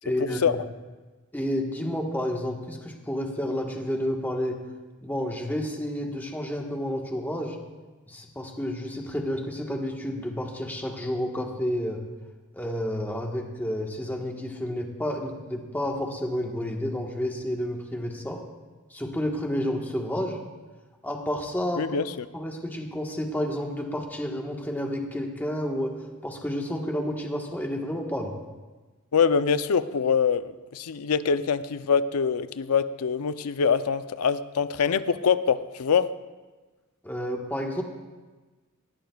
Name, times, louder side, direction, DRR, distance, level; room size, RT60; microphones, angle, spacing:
voice 1, 0.0-0.6 1.3-4.6 5.0-7.6 8.1-12.0 12.5-18.4 18.9-20.4 21.0-22.0 22.3-26.0 26.2-28.4 37.0-37.8, equal, 10° left, 1 dB, 1.3 m, -30 dB
voice 2, 21.8-22.2 29.1-36.1, left 6 dB, 80° left, 13 dB, 0.5 m, -24 dB
19.5 x 15.5 x 2.3 m, 1.3 s
head